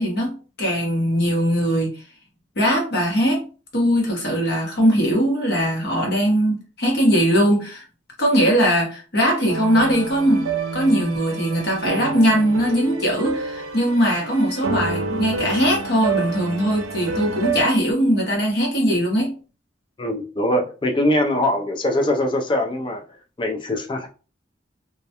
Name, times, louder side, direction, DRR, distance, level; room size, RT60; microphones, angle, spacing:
voice 1, 0.0-2.0 2.6-3.4 3.7-7.8 8.2-19.3, equal, 55° left, 0.9 m, -20 dB
sound 1, 9.5-17.6, right 4 dB, 90° right, 0.4 m, -28 dB
voice 2, 20.0-23.0 23.4-24.1, left 1 dB, 25° left, 0.4 m, -22 dB
2.2 x 2.1 x 2.8 m
head